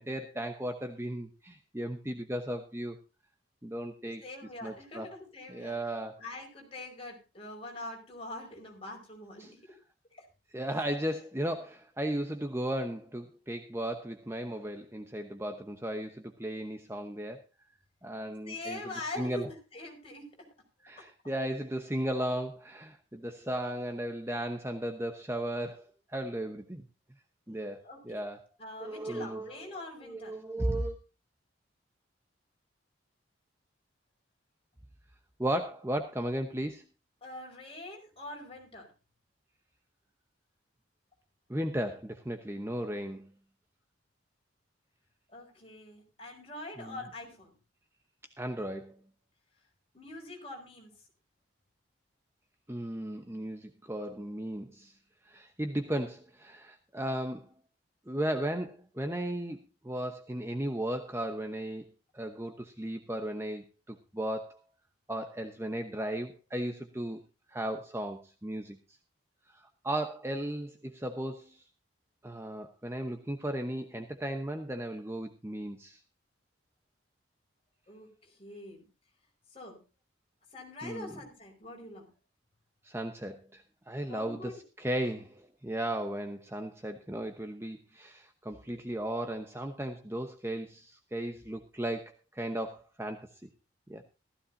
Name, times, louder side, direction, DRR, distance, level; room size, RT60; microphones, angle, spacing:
voice 1, 0.0-3.0 3.6-4.2 4.6-5.1 5.5-6.2 9.4-9.5 10.5-17.4 18.0-19.5 20.8-26.8 27.5-28.4 28.8-29.6 30.0-31.0 35.4-36.8 41.5-43.3 46.8-47.0 48.4-49.0 52.7-54.9 55.2-57.5 58.1-64.6 65.1-67.2 67.5-68.8 69.5-71.6 72.2-76.0 80.8-81.2 82.8-93.5 93.9-94.0, right 1 dB, 15° right, 6 dB, 0.9 m, -36 dB
voice 2, 4.2-9.5 10.2-10.3 18.4-20.3 21.0-21.1 27.8-28.2 28.6-30.4 37.2-38.9 45.3-47.5 49.9-50.9 77.9-78.8 79.5-79.8 80.5-82.1 84.1-84.6, left 2 dB, 30° left, 1 dB, 5.1 m, -44 dB
15.5 x 14.0 x 2.7 m, 0.30 s
head